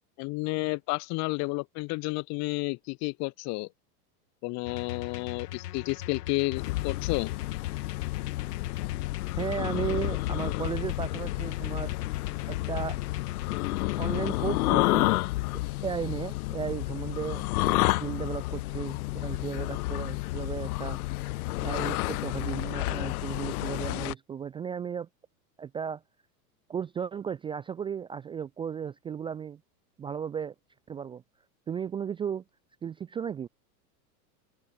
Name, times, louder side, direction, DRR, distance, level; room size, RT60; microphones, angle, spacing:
voice 1, 0.2-3.7 4.4-7.3, left 27 dB, 35° left, 0.7 m, -31 dB
sound 1, 4.7-14.3, left 13 dB, 80° left, 1.6 m, -40 dB
sound 2, 6.6-24.1, left 19 dB, 65° left, 1.0 m, -30 dB
voice 2, 9.4-11.9 12.5-13.0 14.0-15.1 15.8-21.0 21.6-25.1 25.6-26.0 26.7-29.6 30.0-30.5 30.9-31.2 31.7-32.4 32.8-33.5, right 7 dB, 10° right, 0.4 m, -35 dB
hypercardioid pair, 125°, 47 cm